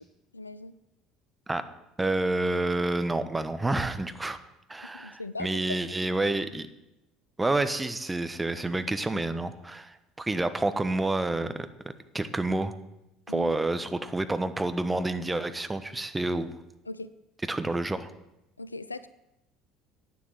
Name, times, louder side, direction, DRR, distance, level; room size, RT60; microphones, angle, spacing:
voice 1, 0.3-0.7 4.8-5.8 13.3-13.5 16.9-17.1 18.6-19.1, left 2 dB, 90° left, 15 dB, 0.4 m, -39 dB
voice 2, 2.0-4.4 4.7-6.7 7.4-11.7 12.1-12.7 13.3-16.5 17.5-18.1, right 2 dB, 15° right, 10 dB, 1.2 m, -29 dB
11.5 x 9.1 x 7.9 m, 0.93 s
figure-of-eight pair, 60°, 0 cm